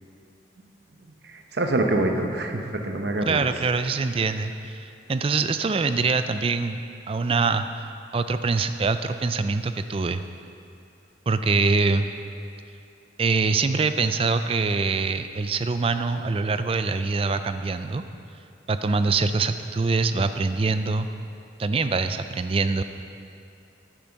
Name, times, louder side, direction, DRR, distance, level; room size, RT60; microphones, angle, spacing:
voice 1, 1.2-3.5, right 2 dB, 55° right, 3 dB, 0.8 m, -25 dB
voice 2, 3.3-6.8 7.1-10.2 11.3-12.1 13.2-18.0 18.7-21.1 21.6-22.8, right 4 dB, 30° right, 10 dB, 0.3 m, -24 dB
10.5 x 9.0 x 5.2 m, 2.7 s
head